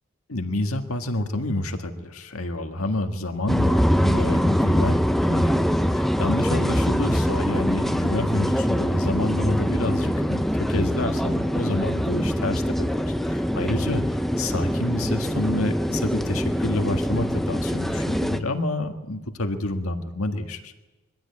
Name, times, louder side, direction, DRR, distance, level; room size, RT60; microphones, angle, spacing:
voice 1, 0.3-14.0 14.4-20.7, left 1 dB, 75° left, 6 dB, 1.8 m, -28 dB
sound 1, 3.5-18.4, equal, ahead, 0.7 m, -23 dB
22.0 x 15.0 x 8.6 m, 1.2 s
head